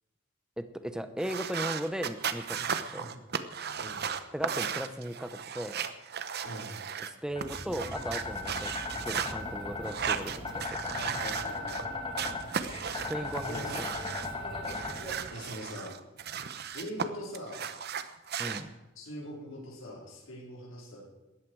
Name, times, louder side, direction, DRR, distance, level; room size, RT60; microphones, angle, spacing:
voice 1, 0.6-3.1 4.3-5.8 7.0-10.9 13.1-13.9 18.4-18.7, equal, 5° right, 10 dB, 1.0 m, -37 dB
sound 1, 1.2-7.1 7.4-9.3 9.8-11.8 12.2-14.3 14.6-17.1 17.3-18.6, right 7 dB, 55° right, 1.0 m, -36 dB
voice 2, 6.4-6.7 10.9-12.1 13.5-13.7 15.3-15.9 16.7-17.6 19.0-21.0, equal, 75° left, -3 dB, 4.7 m, -42 dB
sound 2, 7.3-15.1, left 2 dB, 25° left, 2.8 m, -37 dB
18.0 x 13.5 x 4.8 m, 1.0 s
head